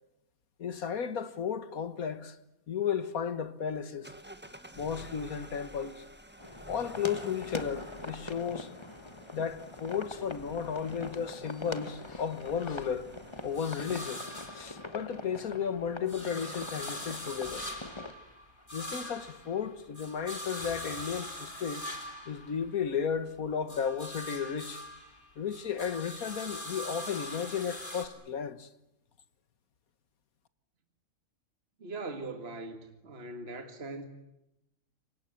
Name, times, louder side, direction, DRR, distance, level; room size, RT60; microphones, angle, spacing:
voice 1, 0.6-2.4 2.7-4.1 4.8-6.0 6.7-8.7 9.3-13.1 13.4-14.2 14.5-17.7 18.7-21.8 22.3-24.8 25.4-28.7, left 7 dB, 85° left, 1.9 m, -34 dB
sound 1, 4.0-14.3, right 1 dB, 10° right, 1.5 m, -51 dB
sound 2, 6.4-18.1, left 2 dB, 20° left, 1.4 m, -44 dB
sound 3, 9.0-11.3 11.7-15.4 15.7-23.2 23.5-28.1, left 1 dB, 35° left, 3.7 m, -43 dB
voice 2, 31.8-34.0, right 2 dB, 45° right, 2.1 m, -40 dB
28.5 x 24.5 x 7.9 m
omnidirectional pair, 1.5 m